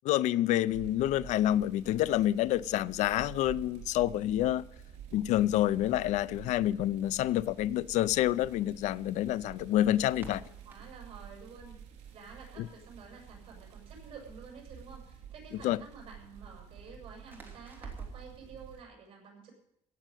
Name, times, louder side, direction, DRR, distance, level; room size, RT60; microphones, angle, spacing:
voice 1, 0.0-4.6 5.1-10.4 15.6-15.8, left 13 dB, 75° left, 0.5 m, -28 dB
sound 1, 0.6-18.8, right 8 dB, 70° right, 4.2 m, -50 dB
Crackle, 6.9-18.3, right 4 dB, 15° right, 3.2 m, -53 dB
voice 2, 10.0-11.8 12.1-19.5, right 5 dB, 50° right, 7.5 m, -51 dB
16.5 x 7.4 x 9.0 m
cardioid pair, 130°, 12 cm